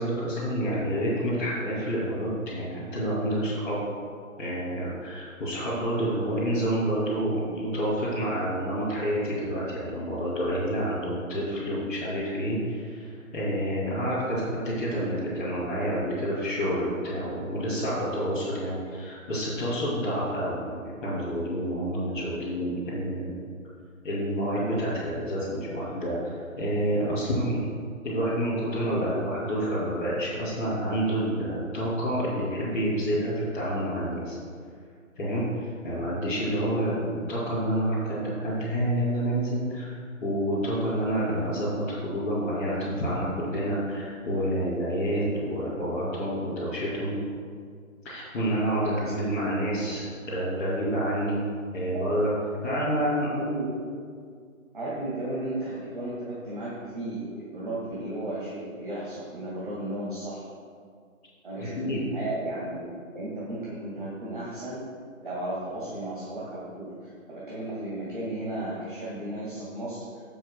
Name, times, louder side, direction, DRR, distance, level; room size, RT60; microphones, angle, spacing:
voice 1, 0.0-3.8 4.4-23.3 24.0-27.6 28.0-34.4 35.1-47.2 48.0-51.4 51.7-52.3 52.6-53.3 61.8-62.0, equal, 10° left, -17 dB, 2.4 m, -28 dB
voice 2, 53.3-53.6 54.7-60.5 61.4-64.8 65.2-70.1, right 1 dB, 35° right, -7 dB, 1.9 m, -34 dB
16.0 x 7.8 x 2.2 m, 2.1 s
figure-of-eight pair, 175°, 42 cm